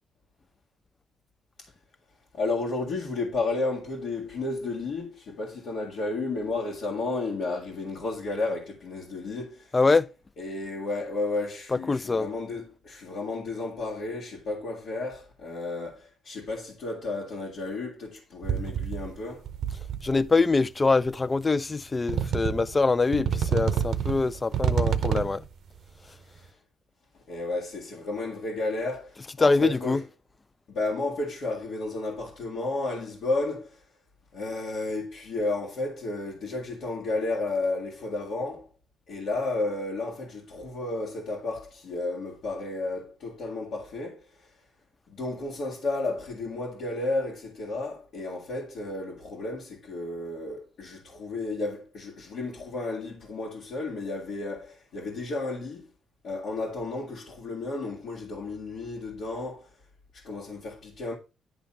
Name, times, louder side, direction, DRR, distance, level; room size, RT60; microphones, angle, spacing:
voice 1, 2.3-9.7 10.4-19.5 26.3-26.4 27.3-30.0 30.7-33.8 34.3-38.7 39.1-44.5 45.1-55.9 56.2-59.7 60.1-61.2, left 2 dB, 65° left, 1.8 m, -32 dB
voice 2, 9.7-10.1 11.9-12.3 20.0-25.4 29.4-30.0, left 3 dB, 25° left, 0.4 m, -24 dB
sound 1, 18.4-19.2 19.5-20.2 21.1-21.2 22.1-22.8 23.1-25.5, right 8 dB, 70° right, 0.7 m, -28 dB
10.5 x 3.5 x 5.4 m
cardioid pair, 90°, 0 cm